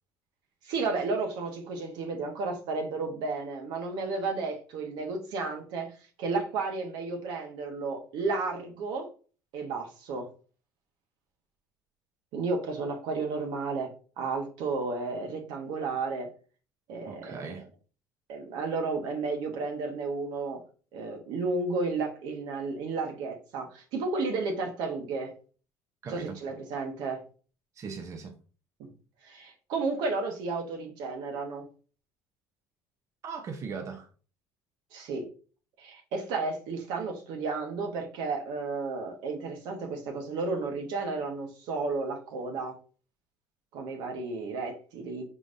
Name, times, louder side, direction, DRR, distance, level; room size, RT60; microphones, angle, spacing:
voice 1, 0.6-5.9 6.2-9.1 9.5-10.3 12.3-13.9 14.2-16.3 16.9-17.5 18.3-20.6 20.9-25.3 26.1-27.2 28.8-28.9 29.2-31.7 34.9-35.3 35.8-42.7 43.7-45.2, right 3 dB, 75° right, 1.1 m, -32 dB
voice 2, 17.1-17.6 26.0-26.4 27.7-28.3 33.2-34.1, right 5 dB, 40° right, 0.7 m, -39 dB
4.7 x 3.9 x 2.6 m
supercardioid pair, 85°, 8 cm